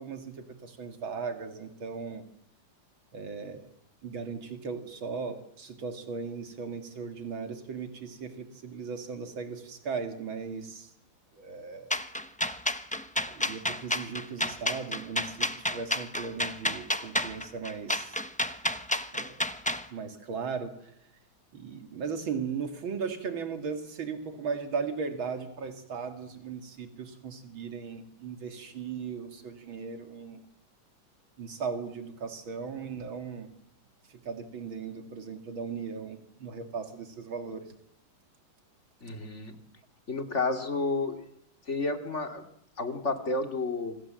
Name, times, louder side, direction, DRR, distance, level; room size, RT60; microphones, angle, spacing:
voice 1, 0.0-2.2 3.1-3.7 4.0-10.9 11.3-11.9 13.3-18.2 19.1-19.5 19.9-20.9 21.5-30.4 31.4-33.5 34.2-37.7, right 5 dB, 85° right, 6 dB, 2.9 m, -37 dB
sound 1, 11.9-19.8, left 1 dB, 5° left, 0.7 m, -30 dB
voice 2, 39.0-39.5 40.1-41.2 41.7-42.4 42.8-44.0, left 3 dB, 35° left, 6 dB, 2.9 m, -31 dB
28.0 x 26.0 x 7.6 m, 0.74 s
omnidirectional pair, 2.1 m